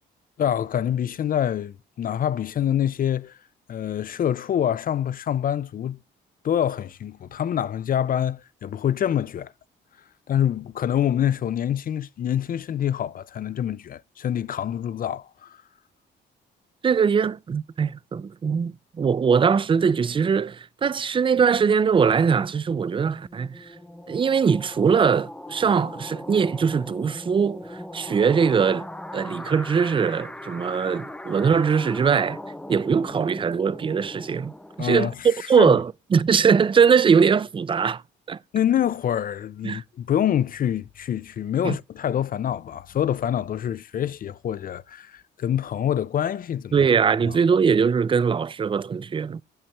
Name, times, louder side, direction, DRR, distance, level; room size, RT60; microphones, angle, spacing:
voice 1, 0.4-3.4 3.7-6.0 6.4-9.5 10.3-15.6 34.8-35.3 35.6-35.7 38.5-46.8 47.3-47.4, left 10 dB, 45° left, 0.4 m, -26 dB
voice 2, 16.8-23.7 24.1-28.9 29.1-32.4 32.7-34.5 34.8-38.0 38.3-38.4 39.6-39.8 41.6-41.8 46.7-49.4, right 6 dB, 25° right, 0.4 m, -21 dB
sound 1, 23.0-35.4, left 1 dB, 5° left, 0.7 m, -40 dB
7.2 x 5.5 x 3.3 m
cardioid pair, 90°, 20 cm